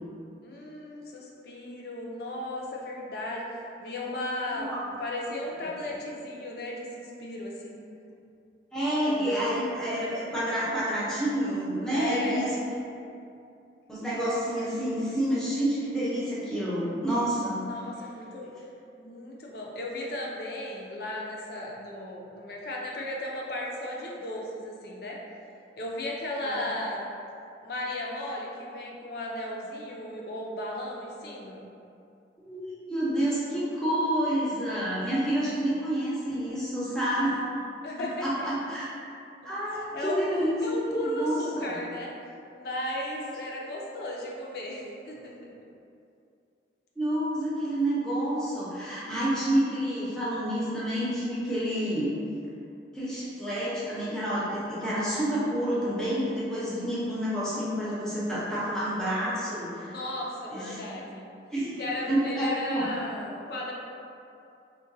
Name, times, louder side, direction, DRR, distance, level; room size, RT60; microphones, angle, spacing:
voice 1, 0.4-4.7 5.0-7.8 9.0-9.5 11.9-12.4 17.6-18.5 19.0-25.2 25.8-27.0 27.6-31.6 37.8-38.3 39.7-40.2 40.6-42.1 42.5-45.5 59.8-61.3 61.8-63.7, left 1 dB, 55° left, -2 dB, 0.5 m, -35 dB
voice 2, 8.7-12.8 13.9-17.7 26.4-26.7 32.4-37.4 38.2-38.9 39.4-40.6 41.0-41.7 47.0-52.1 52.9-59.9 60.5-60.8 61.5-62.9, right 1 dB, 5° left, -9 dB, 0.6 m, -29 dB
3.8 x 2.2 x 2.6 m, 2.6 s
head